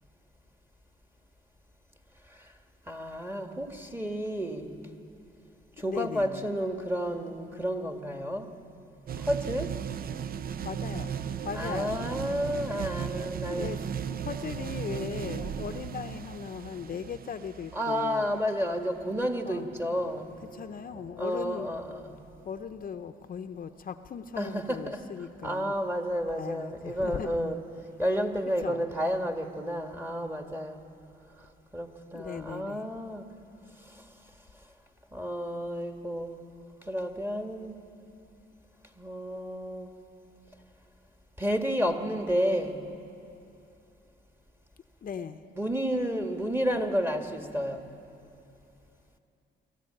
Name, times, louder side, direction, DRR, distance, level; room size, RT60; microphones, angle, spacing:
voice 1, 2.9-4.7 5.8-8.5 9.2-9.7 11.5-13.7 17.7-20.3 20.9-22.2 24.4-25.1 25.4-27.6 28.0-30.8 31.4-33.3 33.8-34.1 35.1-36.4 36.8-37.8 39.0-39.9 41.4-42.8 45.5-47.9, equal, 10° right, 5 dB, 1.7 m, -31 dB
voice 2, 5.8-6.5 10.6-11.2 11.4-12.0 13.5-18.3 19.4-19.7 20.5-21.7 22.4-25.7 26.4-27.5 28.6-28.8 32.1-32.8 45.0-45.4, left 7 dB, 45° left, 9 dB, 0.7 m, -38 dB
sound 1, 9.1-22.8, right 8 dB, 50° right, 0.6 m, -37 dB
23.5 x 14.5 x 8.9 m, 2.8 s
cardioid pair, 90°, 20 cm